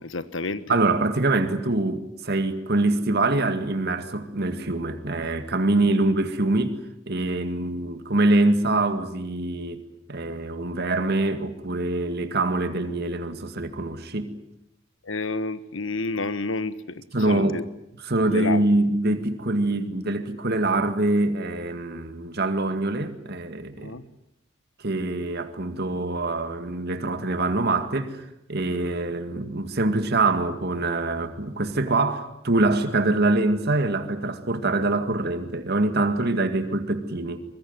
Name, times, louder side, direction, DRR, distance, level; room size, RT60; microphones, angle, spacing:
voice 1, 0.0-0.8 15.0-17.6 18.2-18.6 23.8-24.0, left 3 dB, 70° left, 1.4 m, -30 dB
voice 2, 0.7-6.8 7.1-9.8 10.1-14.3 17.1-17.6 18.1-24.0 24.8-37.4, right 2 dB, 55° right, 2.1 m, -24 dB
24.0 x 21.5 x 9.5 m
head